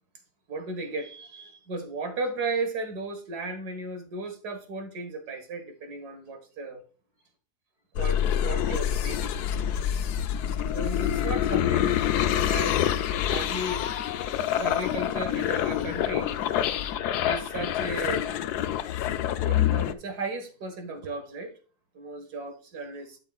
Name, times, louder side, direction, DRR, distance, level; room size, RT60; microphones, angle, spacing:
voice 1, 0.5-6.8 8.0-9.4 10.7-12.1 12.5-12.9 13.3-13.8 14.6-16.3 17.2-18.3 19.4-21.5 21.9-23.2, right 2 dB, 80° right, 2.2 m, -35 dB
sound 1, 8.0-19.9, left 10 dB, 80° left, 1.2 m, -26 dB
11.5 x 6.5 x 2.4 m
omnidirectional pair, 1.7 m